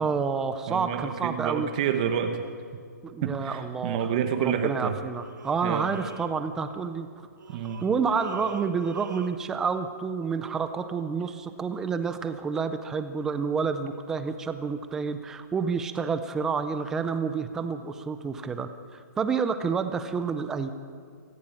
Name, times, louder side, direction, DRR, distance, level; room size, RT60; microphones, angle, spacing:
voice 1, 0.0-1.7 3.0-4.1 4.4-7.1 7.8-20.7, right 5 dB, 5° right, 10 dB, 0.5 m, -29 dB
voice 2, 0.7-2.4 3.2-4.9 5.6-5.9 7.5-7.8, right 8 dB, 25° right, 7 dB, 1.1 m, -28 dB
sound 1, 5.1-7.0 7.4-9.4, right 6 dB, 85° right, 1.4 m, -45 dB
23.5 x 14.5 x 8.9 m, 2.1 s
hypercardioid pair, 180°, 10 cm